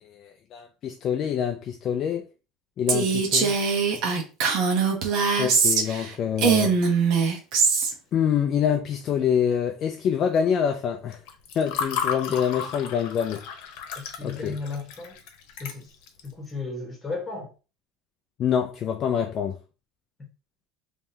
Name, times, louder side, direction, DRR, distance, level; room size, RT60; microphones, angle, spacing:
voice 1, 0.0-2.2 2.8-3.6 5.4-6.7 8.1-11.2 11.6-13.4 14.2-14.5 18.4-19.6, left 8 dB, 35° left, 0.4 m, -26 dB
Female speech woman speaking, 2.9-6.1 6.4-7.9, right 5 dB, 55° right, 1.0 m, -22 dB
Water / Fill (with liquid), 11.1-16.3, left 8 dB, 75° left, 0.9 m, -33 dB
voice 2, 13.9-15.2 15.6-15.9 16.2-17.5, left 3 dB, 15° left, 1.2 m, -34 dB
3.6 x 3.1 x 2.7 m
cardioid pair, 170°, 0 cm